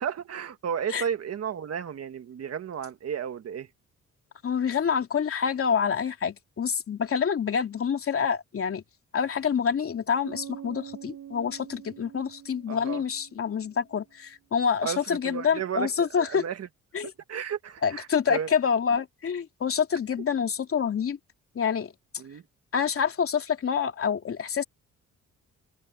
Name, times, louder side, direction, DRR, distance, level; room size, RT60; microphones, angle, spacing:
voice 1, 0.0-3.7 12.7-13.0 14.8-16.7 17.0-18.5 22.2-22.4, right 8 dB, 55° right, 2.0 m, -33 dB
voice 2, 4.4-8.8 9.1-16.4 16.9-17.1 17.8-21.2 21.5-21.9 22.7-24.6, left 7 dB, 50° left, 3.0 m, -27 dB
Bass guitar, 10.2-13.9, right 10 dB, 75° right, 4.2 m, -45 dB
cardioid pair, 90°, 30 cm